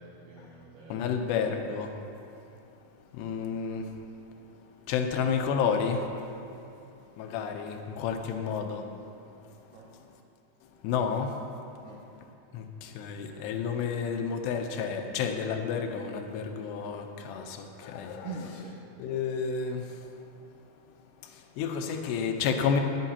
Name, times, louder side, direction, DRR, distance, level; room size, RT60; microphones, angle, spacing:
voice 1, 0.0-1.1 9.7-9.9 11.8-12.0 18.2-18.8, right 3 dB, 80° right, -3 dB, 1.9 m, -43 dB
voice 2, 0.9-1.9 3.2-3.8 4.9-6.0 7.2-8.8 10.8-11.3 12.5-12.6 13.0-17.6 17.8-18.3 19.0-19.8 21.6-22.8, left 6 dB, 90° left, 4 dB, 2.9 m, -30 dB
19.5 x 8.2 x 2.8 m, 2.7 s
omnidirectional pair, 4.8 m